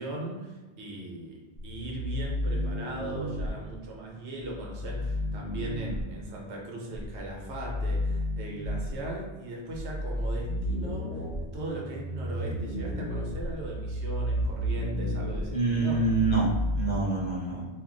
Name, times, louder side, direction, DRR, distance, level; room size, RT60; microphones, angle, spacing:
voice 1, 0.0-1.4 1.6-11.2 11.5-16.0, right 1 dB, 80° right, -2 dB, 1.0 m, -38 dB
sound 1, 1.6-3.5 4.4-6.0 6.9-9.0 9.7-16.9, equal, 40° right, 1.0 m, -32 dB
voice 2, 15.5-17.7, right 3 dB, 50° left, -5 dB, 0.7 m, -26 dB
2.4 x 2.1 x 3.7 m, 1.2 s
omnidirectional pair, 1.1 m